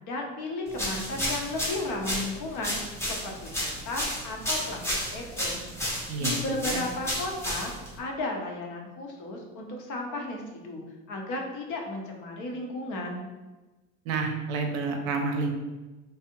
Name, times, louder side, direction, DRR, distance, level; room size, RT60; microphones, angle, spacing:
voice 1, 0.0-2.8 3.1-4.8 5.1-5.6 6.2-7.7 8.0-13.3, left 2 dB, 50° left, 1 dB, 0.7 m, -34 dB
sound 1, 0.7-8.0, equal, 5° left, 0.7 m, -32 dB
voice 2, 6.1-6.8 14.1-15.5, right 3 dB, 80° right, 3 dB, 0.6 m, -29 dB
2.4 x 2.0 x 2.8 m, 1.2 s
hypercardioid pair, 85°, 39 cm